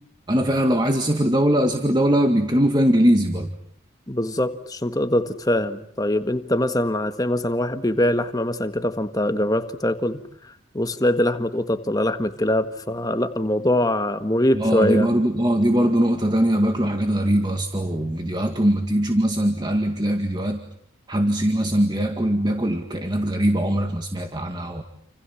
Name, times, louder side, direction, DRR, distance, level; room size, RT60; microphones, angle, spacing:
voice 1, 0.3-3.5 14.5-20.6 21.1-24.8, right 1 dB, 20° right, 5 dB, 2.0 m, -21 dB
voice 2, 4.1-15.1, left 1 dB, 20° left, 9 dB, 1.6 m, -23 dB
29.5 x 28.0 x 7.2 m, 0.65 s
head